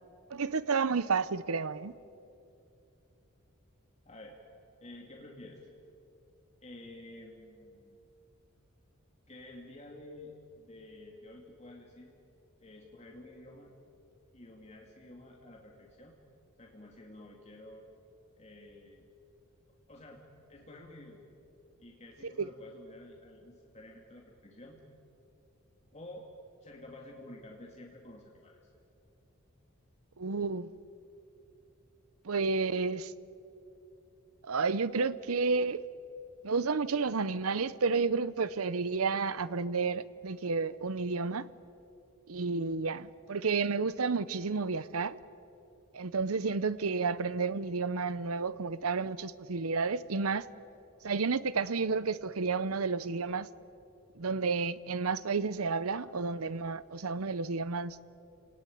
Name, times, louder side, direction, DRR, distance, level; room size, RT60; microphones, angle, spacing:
voice 1, 0.3-1.9 22.2-22.5 30.2-30.7 32.2-33.1 34.4-35.8 36.4-41.5 42.3-45.2 45.9-50.5 51.0-53.5 54.1-58.0, right 4 dB, 90° right, 0.8 m, -31 dB
voice 2, 4.1-4.4 4.8-5.6 6.6-8.0 9.3-12.1 12.6-13.7 14.3-16.1 16.6-17.8 18.4-19.1 19.9-20.2 20.5-21.2 21.8-24.8 25.9-26.3 26.6-28.6, left 1 dB, 30° left, 2.5 m, -50 dB
29.0 x 19.0 x 9.4 m
head